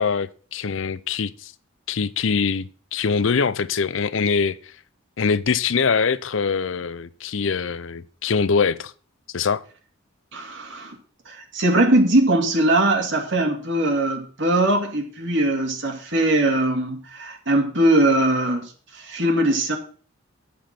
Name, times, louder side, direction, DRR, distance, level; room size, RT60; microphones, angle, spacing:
voice 1, 0.0-1.5 1.9-4.7 5.2-8.9 9.3-9.6, left 5 dB, 65° left, 0.5 m, -23 dB
voice 2, 10.3-11.0 11.3-19.8, right 1 dB, 60° right, 2.2 m, -21 dB
10.5 x 7.2 x 5.8 m
head